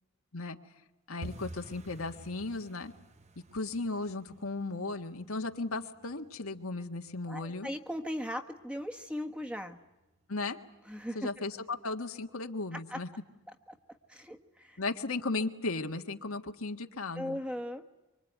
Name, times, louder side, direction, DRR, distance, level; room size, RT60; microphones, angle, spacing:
voice 1, 1.1-2.9 3.5-7.7 10.3-10.6 11.1-13.1 14.8-17.4, left 3 dB, 80° left, 5 dB, 1.7 m, -36 dB
sound 1, 1.2-11.9 12.2-12.9 13.1-13.5 13.7-14.1 14.4-14.5 15.0-15.5 15.9-16.0 16.5-16.6, right 1 dB, 30° right, 1.0 m, -53 dB
voice 2, 7.3-9.8 10.9-11.4 12.7-13.0 13.7-13.8 14.1-14.8 17.1-17.8, equal, 5° right, 6 dB, 1.4 m, -38 dB
25.0 x 25.0 x 9.4 m, 1.0 s
head